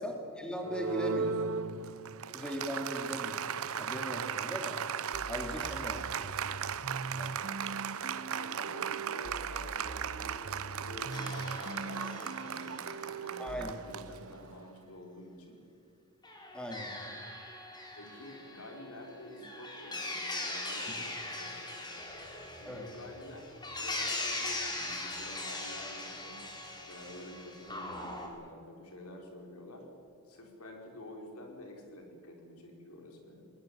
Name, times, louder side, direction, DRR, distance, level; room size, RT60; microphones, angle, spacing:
voice 1, 0.0-1.4 2.3-3.4 3.8-4.8 5.3-6.4 7.1-7.3 13.4-13.7 16.5-17.1 22.6-22.8, equal, 5° left, 2 dB, 2.9 m, -39 dB
Applause, 0.6-14.7, right 7 dB, 70° right, 0.8 m, -37 dB
sound 1, 5.1-13.7, right 3 dB, 50° right, 0.9 m, -43 dB
voice 2, 8.1-15.6 17.9-21.1 21.4-22.0 22.5-26.4 26.9-29.9 30.2-33.5, left 1 dB, 75° left, 2 dB, 4.8 m, -49 dB
sound 2, 11.1-13.1 16.2-28.3, left 2 dB, 20° left, 3.9 m, -40 dB
21.5 x 20.0 x 8.2 m, 2.5 s
head